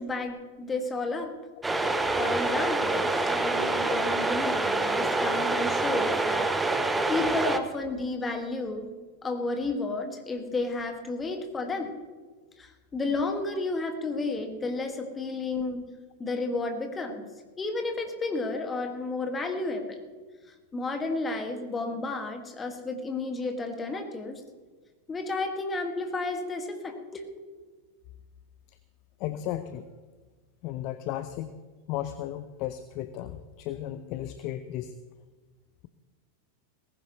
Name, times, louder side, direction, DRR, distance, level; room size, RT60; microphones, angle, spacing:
voice 1, 0.0-1.3 2.2-6.5 7.1-9.0 9.2-12.0 12.6-15.9 16.2-17.2 17.6-20.0 20.7-24.4 25.1-27.3, left 3 dB, 15° left, 4 dB, 2.0 m, -32 dB
sound 1, 1.6-7.6, right 2 dB, 10° right, 1.0 m, -26 dB
voice 2, 29.2-29.9 30.6-31.5 31.9-34.9, left 12 dB, 40° left, 12 dB, 0.7 m, -35 dB
18.5 x 16.0 x 3.1 m, 1.4 s
figure-of-eight pair, 90°, 0 cm